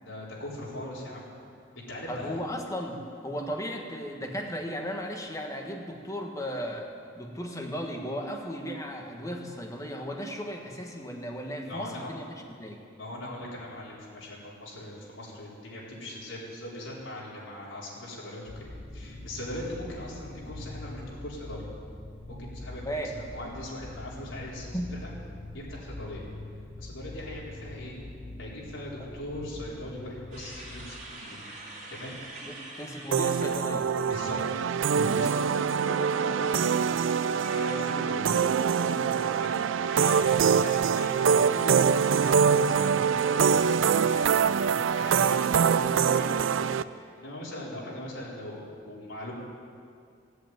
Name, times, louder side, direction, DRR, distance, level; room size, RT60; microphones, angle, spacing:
voice 1, 0.0-1.3 1.7-2.4 11.6-12.1 12.9-18.7 18.9-21.6 22.4-25.1 25.5-26.2 26.8-28.0 28.4-31.4 31.9-32.1 34.1-36.9 37.4-38.4 38.8-41.8 42.2-49.3, left 1 dB, 85° left, -5 dB, 4.3 m, -40 dB
voice 2, 2.1-6.9 7.1-12.8 22.8-23.1 24.7-24.9 29.0-29.1 31.3-31.4 32.5-33.9, equal, 15° left, 2 dB, 1.4 m, -35 dB
sound 1, 18.5-30.9, left 2 dB, 70° left, 2.8 m, -43 dB
sound 2, 30.3-35.2 35.6-41.3 41.6-41.9 42.8-45.5, right 2 dB, 40° right, 2.5 m, -48 dB
sound 3, 33.1-46.8, right 7 dB, 80° right, 0.4 m, -24 dB
17.0 x 8.0 x 9.1 m, 2.3 s
head